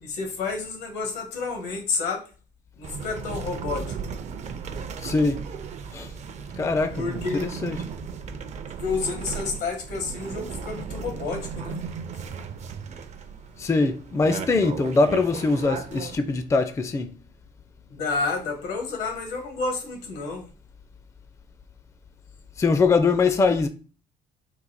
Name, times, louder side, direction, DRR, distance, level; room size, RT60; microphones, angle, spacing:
voice 1, 0.0-2.2 2.8-3.9 7.0-7.6 8.8-11.8 17.9-20.5, left 4 dB, 85° left, 1.3 m, -30 dB
sound 1, 2.8-16.2, right 6 dB, 45° right, 0.5 m, -36 dB
voice 2, 5.0-5.4 5.9-6.1 6.6-7.8 13.6-17.1 22.6-23.7, left 3 dB, 15° left, 0.4 m, -22 dB
3.9 x 2.4 x 4.1 m
cardioid pair, 110°, 17 cm